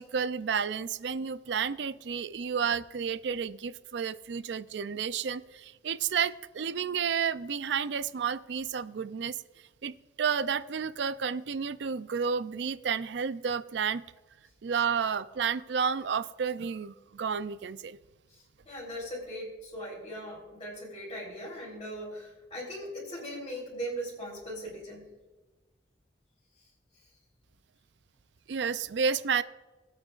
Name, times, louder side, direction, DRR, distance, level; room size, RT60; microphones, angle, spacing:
voice 1, 0.0-9.4 9.8-14.0 14.6-18.0 28.5-29.4, right 6 dB, 70° right, 15 dB, 0.4 m, -31 dB
voice 2, 18.3-25.1, equal, 30° left, -8 dB, 3.9 m, -39 dB
21.0 x 9.0 x 2.5 m, 1.2 s
head